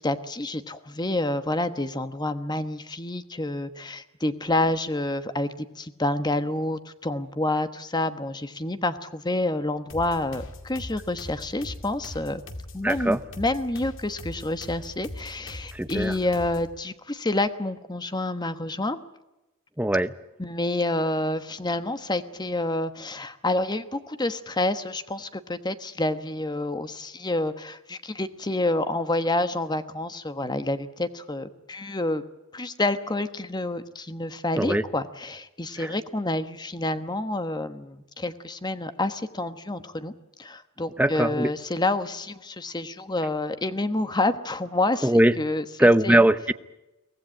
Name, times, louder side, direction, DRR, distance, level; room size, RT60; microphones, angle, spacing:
voice 1, 0.0-12.4 12.7-19.0 20.4-32.2 32.5-45.1 45.4-46.3, left 2 dB, 20° left, 10 dB, 1.2 m, -28 dB
sound 1, 9.9-16.8, left 1 dB, 60° left, 2.2 m, -41 dB
voice 2, 12.8-13.2 15.7-16.1 19.8-20.1 34.6-34.8 35.8-35.9 41.0-41.5 45.0-45.3 45.8-46.5, right 1 dB, 5° right, 11 dB, 0.7 m, -20 dB
24.0 x 17.5 x 8.7 m, 0.98 s
head